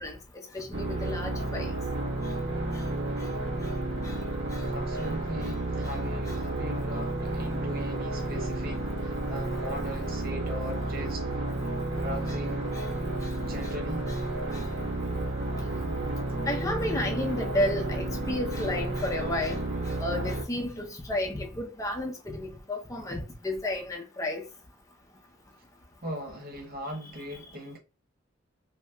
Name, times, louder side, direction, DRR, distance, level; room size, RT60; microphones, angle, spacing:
voice 1, 0.5-1.7 4.0-4.1 12.7-12.8 14.5-14.7 16.5-19.6 20.0-24.4, left 1 dB, 15° left, 0.6 m, -32 dB
sound 1, 0.7-20.4, right 1 dB, 75° right, 1.2 m, -31 dB
voice 2, 4.7-11.3 11.9-12.7 13.4-14.1 26.0-27.8, equal, 45° right, 0.8 m, -39 dB
2.8 x 2.1 x 3.3 m
head